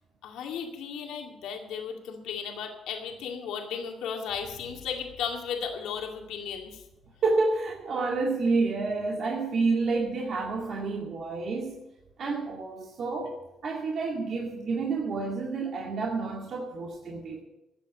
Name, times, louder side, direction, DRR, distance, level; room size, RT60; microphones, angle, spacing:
voice 1, 0.2-6.8, left 7 dB, 85° left, 2 dB, 2.1 m, -35 dB
voice 2, 7.2-11.8 12.2-17.4, right 3 dB, 60° right, -1 dB, 2.1 m, -29 dB
13.5 x 7.8 x 8.6 m, 0.92 s
cardioid pair, 90°, 0 cm